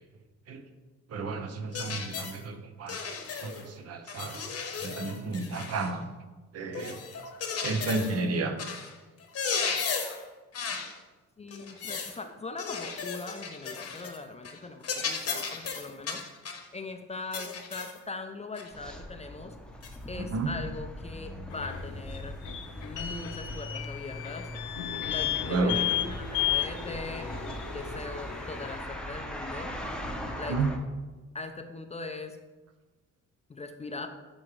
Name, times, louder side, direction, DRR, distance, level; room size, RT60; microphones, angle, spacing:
voice 1, 1.1-3.0 3.4-4.4 4.8-6.1 6.5-7.0 7.6-8.6 20.2-20.5 25.5-25.8 30.5-30.7, right 3 dB, 55° right, 7 dB, 0.8 m, -31 dB
sound 1, 1.7-2.4 2.9-3.7 4.1-5.9 6.7-8.2 8.6-8.9 9.2-10.2 10.5-10.9 11.5-12.2 12.6-14.2 14.4-14.6 14.8-16.7 17.3-18.0 18.6-18.7 19.8-20.0, left 5 dB, 55° left, 1.0 m, -35 dB
voice 2, 11.4-16.2 16.7-19.6 20.1-22.4 22.8-24.5 25.0-29.7 30.4-30.6 31.3-32.4 33.5-34.1, left 3 dB, 20° left, 6 dB, 0.5 m, -40 dB
sound 2, 18.7-30.8, equal, 5° left, 0.8 m, -40 dB
sound 3, 21.5-28.8, left 13 dB, 75° left, 0.7 m, -34 dB
10.5 x 3.7 x 3.2 m, 1.2 s
cardioid pair, 90°, 30 cm